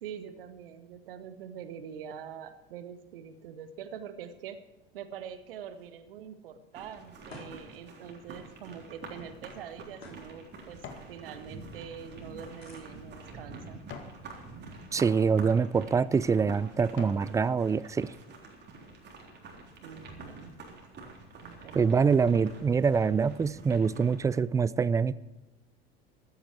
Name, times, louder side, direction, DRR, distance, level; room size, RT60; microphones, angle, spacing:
voice 1, 0.0-4.6 4.9-13.8 19.8-20.6 21.4-22.0, right 8 dB, 65° right, 11 dB, 1.4 m, -44 dB
sound 1, 4.9-16.2, left 1 dB, 85° left, 3.1 m, -58 dB
sound 2, 6.7-24.4, right 3 dB, 35° right, 3.7 m, -47 dB
sound 3, 10.7-11.2 11.6-14.2 14.8-15.1 15.8-15.9 16.4-17.3 17.8-17.9, left 6 dB, 40° left, 2.1 m, -49 dB
voice 2, 14.9-18.1 21.7-25.2, right 5 dB, 10° right, 20 dB, 0.4 m, -25 dB
15.0 x 13.0 x 4.6 m, 1.0 s
figure-of-eight pair, 75°, 30 cm